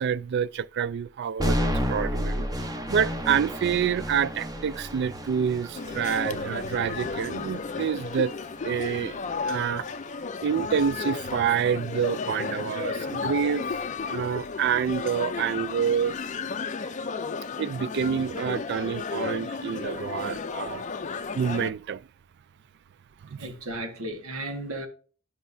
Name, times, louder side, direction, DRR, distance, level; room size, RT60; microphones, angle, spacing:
voice 1, 0.0-8.4 8.6-9.9 10.4-16.2 17.6-20.9 21.3-22.1 23.2-23.5, right 7 dB, 50° right, 0.3 m, -28 dB
sound 1, 1.4-9.4, equal, 15° right, 0.8 m, -32 dB
sound 2, 5.7-21.7, left 4 dB, 35° left, 0.4 m, -33 dB
voice 2, 23.4-24.9, right 1 dB, 75° right, 1.4 m, -34 dB
10.0 x 5.8 x 2.6 m
head